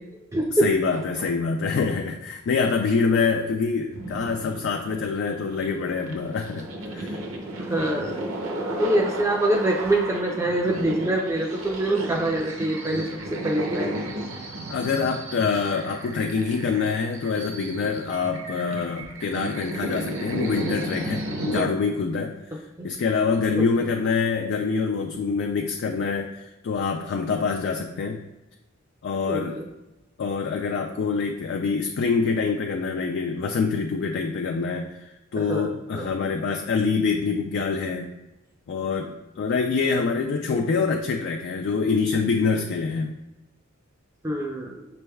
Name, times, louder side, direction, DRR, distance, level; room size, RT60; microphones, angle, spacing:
voice 1, 0.0-1.3 7.6-8.2 8.8-14.3 21.6-21.7 22.8-22.9 23.6-23.7 29.3-29.7 35.4-36.1 40.5-40.6 44.2-44.8, right 1 dB, 15° right, 0 dB, 0.4 m, -25 dB
voice 2, 0.6-6.6 6.9-7.2 14.7-22.3 22.8-28.2 29.0-29.6 30.2-38.1 38.7-43.1, left 5 dB, 55° left, 3 dB, 0.3 m, -25 dB
sound 1, 3.9-21.6, right 1 dB, 70° right, 0.7 m, -33 dB
6.0 x 3.3 x 2.2 m, 1.0 s
head